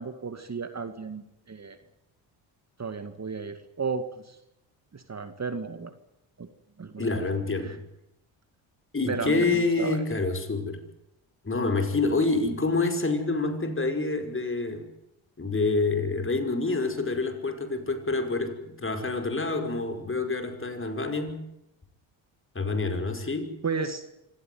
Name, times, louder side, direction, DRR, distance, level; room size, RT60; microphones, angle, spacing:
voice 1, 0.0-1.8 2.8-4.4 4.9-5.9 6.4-6.5 6.8-7.3 7.6-7.8 9.1-10.1 23.6-24.0, right 5 dB, 30° right, 9 dB, 2.2 m, -34 dB
voice 2, 7.0-7.8 8.9-10.8 11.4-14.9 15.4-21.4 22.6-23.5, left 3 dB, 25° left, 6 dB, 5.4 m, -27 dB
25.5 x 16.5 x 9.6 m, 0.87 s
supercardioid pair, 70°, 50 cm